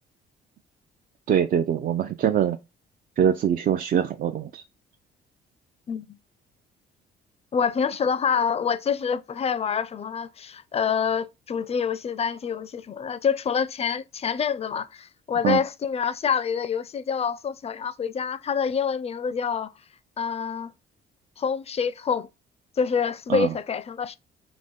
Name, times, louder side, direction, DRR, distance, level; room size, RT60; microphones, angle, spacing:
voice 1, 1.3-2.6 3.2-4.6 15.4-15.6 23.3-23.5, right 9 dB, 45° right, 0.4 m, -23 dB
voice 2, 7.5-19.7 20.2-20.7 21.4-22.3 22.8-24.1, left 6 dB, 30° left, 0.4 m, -26 dB
3.6 x 2.1 x 3.5 m
cardioid pair, 90°, 20 cm